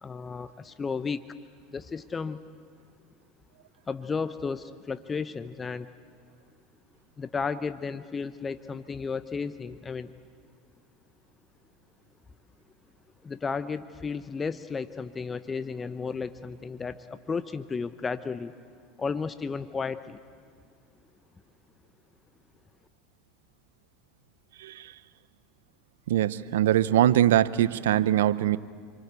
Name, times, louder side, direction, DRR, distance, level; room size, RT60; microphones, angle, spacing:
voice 1, 0.0-1.2 1.7-2.4 3.9-5.9 7.2-10.1 13.2-18.5 19.0-20.2, left 5 dB, 25° left, 12 dB, 0.9 m, -33 dB
voice 2, 24.6-24.9 26.1-28.6, right 12 dB, 80° right, 17 dB, 0.8 m, -22 dB
29.0 x 24.0 x 8.3 m, 2.1 s
hypercardioid pair, 85°, 0 cm